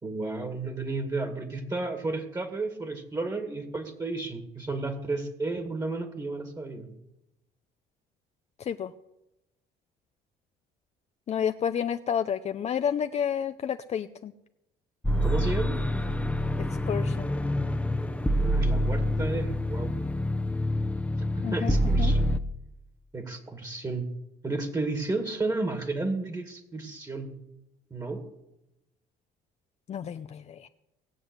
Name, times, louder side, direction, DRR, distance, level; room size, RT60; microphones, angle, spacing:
voice 1, 0.0-6.9 15.2-15.8 18.4-19.9 21.4-22.3 23.1-24.1 24.4-27.3 27.9-28.2, right 3 dB, 20° right, 6 dB, 2.2 m, -32 dB
voice 2, 8.6-8.9 11.3-14.3 16.6-17.3 21.4-22.1 29.9-30.7, left 8 dB, 40° left, 9 dB, 0.6 m, -30 dB
sound 1, 15.0-22.4, equal, 5° left, 0.9 m, -26 dB
19.0 x 7.8 x 8.1 m, 0.91 s
cardioid pair, 110°, 17 cm